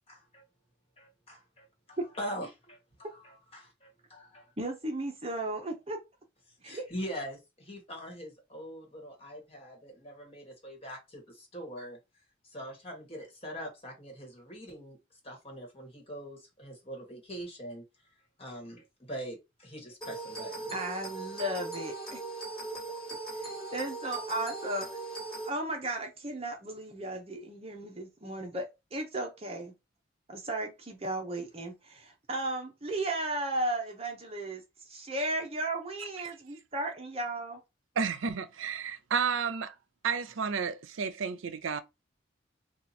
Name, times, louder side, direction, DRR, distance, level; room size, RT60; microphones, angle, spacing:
voice 1, 0.1-0.4 1.0-4.5 6.6-12.0 12.5-15.0 15.2-17.8 18.4-20.7, equal, 30° left, 1.4 m, -43 dB
voice 2, 4.6-6.0 6.6-6.9 20.7-22.2 22.9-23.0 23.4-25.0 25.5-29.7 30.3-37.6, right 1 dB, 30° right, 0.7 m, -35 dB
sound 1, 20.0-25.5, right 2 dB, 5° left, 1.6 m, -39 dB
voice 3, 38.0-39.8 40.0-41.8, right 6 dB, 80° right, 0.5 m, -32 dB
2.8 x 2.4 x 4.1 m
head